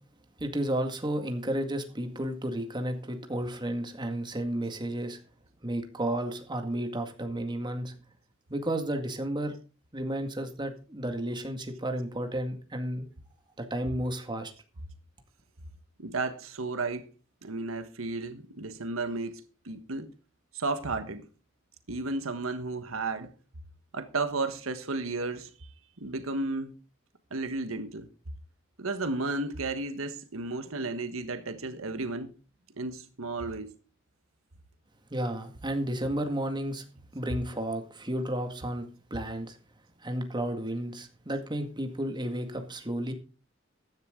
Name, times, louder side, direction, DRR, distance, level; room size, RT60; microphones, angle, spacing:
voice 1, 0.4-5.2 5.6-7.9 8.5-9.6 9.9-13.1 13.6-14.5 35.1-36.8 37.1-39.6 40.0-43.1, right 1 dB, 20° right, 2.0 m, -32 dB
voice 2, 16.0-17.1 17.4-20.1 20.5-21.3 21.9-23.3 23.9-25.5 26.0-26.7 27.3-28.1 28.8-32.3 32.8-33.7 37.3-37.4, right 3 dB, 80° right, 1.4 m, -33 dB
14.5 x 10.5 x 3.8 m
head